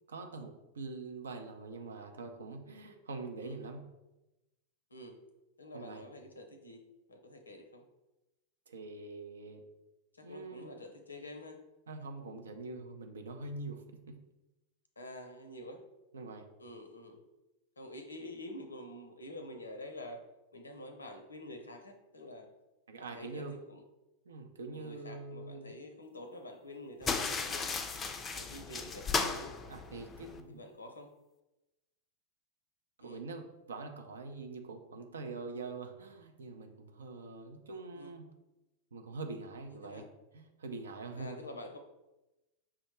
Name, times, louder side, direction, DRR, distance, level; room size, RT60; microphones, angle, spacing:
voice 1, 0.1-3.8 5.7-6.0 8.7-9.6 10.2-10.7 11.9-14.2 16.1-16.5 22.9-23.5 24.3-25.7 29.7-30.6 33.0-38.3 38.9-40.0 40.3-41.4, right 3 dB, 75° right, 4 dB, 0.5 m, -44 dB
voice 2, 5.6-6.8 7.1-7.8 10.1-11.6 15.0-15.8 16.6-17.2 17.8-20.2 20.5-22.5 23.0-23.8 24.7-27.8 28.3-29.5 30.5-31.1 33.0-33.2 37.9-38.1 39.7-40.1 41.2-41.8, left 1 dB, 85° left, 5 dB, 0.5 m, -48 dB
sound 1, 27.0-30.4, left 4 dB, 25° left, 0.4 m, -35 dB
5.7 x 2.1 x 3.1 m, 1.0 s
figure-of-eight pair, 90°, 0 cm